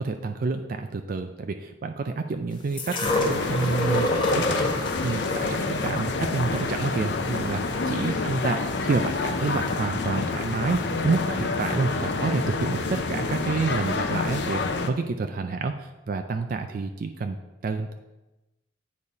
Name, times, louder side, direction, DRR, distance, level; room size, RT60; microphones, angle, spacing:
voice 1, 0.0-4.7 5.0-17.4 17.6-17.9, right 4 dB, 50° right, 6 dB, 0.4 m, -29 dB
sound 1, 2.8-8.8 9.7-9.8, left 1 dB, 25° left, 0.9 m, -29 dB
sound 2, 3.0-14.9, left 3 dB, 70° left, 0.6 m, -28 dB
8.6 x 4.1 x 4.8 m, 1.0 s
head